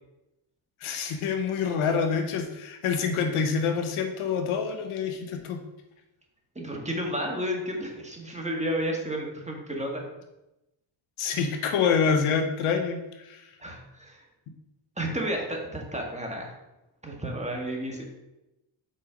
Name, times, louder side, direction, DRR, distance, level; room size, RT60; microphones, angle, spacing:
voice 1, 0.8-5.6 11.2-13.4, left 6 dB, 80° left, 5 dB, 0.9 m, -26 dB
voice 2, 6.5-10.0 13.6-14.2 15.0-16.5 17.0-18.0, equal, 15° right, 0 dB, 1.6 m, -32 dB
5.3 x 4.2 x 5.0 m, 0.95 s
cardioid pair, 65°, 50 cm